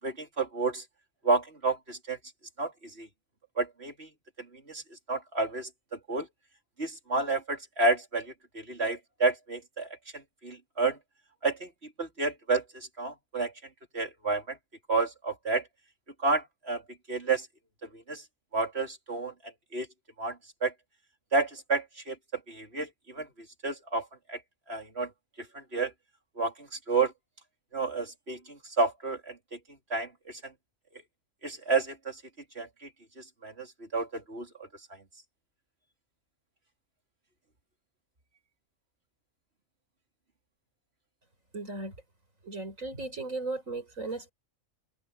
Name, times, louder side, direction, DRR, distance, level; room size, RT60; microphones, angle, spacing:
voice 1, 0.0-0.8 1.2-2.2 2.6-2.7 3.0-3.1 3.6-4.1 4.7-4.8 5.1-5.7 6.1-6.3 6.8-9.9 10.1-11.0 11.4-11.7 12.0-13.5 13.9-14.6 14.9-15.6 16.2-16.8 17.1-17.5 17.9-18.2 18.5-19.3 19.7-19.9 20.2-20.7 21.3-22.2 22.5-23.3 23.6-24.4 24.7-25.1 25.5-25.9 26.4-27.1 27.7-29.6 29.9-30.4 31.4-32.2 32.6-32.9 33.2-33.7 33.9-34.5, right 3 dB, 45° right, 4.1 m, -30 dB
voice 2, 41.5-42.0 42.4-44.3, right 3 dB, 70° right, 5.3 m, -36 dB
omnidirectional pair, 1.4 m